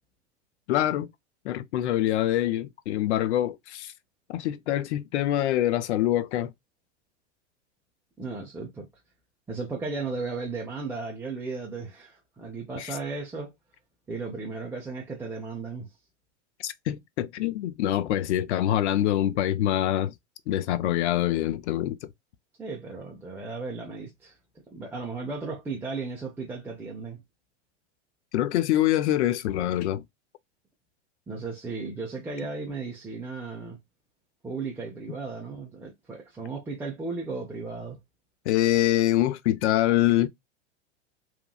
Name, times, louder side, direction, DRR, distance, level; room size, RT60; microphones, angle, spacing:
voice 1, 0.7-1.1 1.4-3.9 4.3-6.5 12.7-12.9 16.6-20.1 20.5-22.0 28.3-30.0 38.5-40.3, left 13 dB, 70° left, 0.6 m, -25 dB
voice 2, 8.2-8.9 9.5-13.5 14.1-15.9 22.6-24.4 24.7-27.2 31.3-33.8 34.4-38.0, right 4 dB, 5° right, 0.4 m, -35 dB
3.0 x 2.5 x 2.2 m
hypercardioid pair, 125°, 36 cm